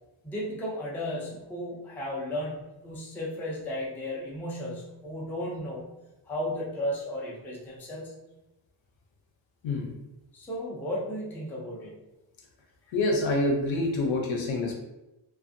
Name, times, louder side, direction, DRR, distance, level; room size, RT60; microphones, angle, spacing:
voice 1, 0.2-5.9 6.3-8.2 10.3-12.0, left 1 dB, 5° left, -5 dB, 0.3 m, -34 dB
voice 2, 12.9-14.7, left 2 dB, 70° left, 0 dB, 0.7 m, -26 dB
2.5 x 2.3 x 2.5 m, 0.97 s
wide cardioid pair, 160°, 48 cm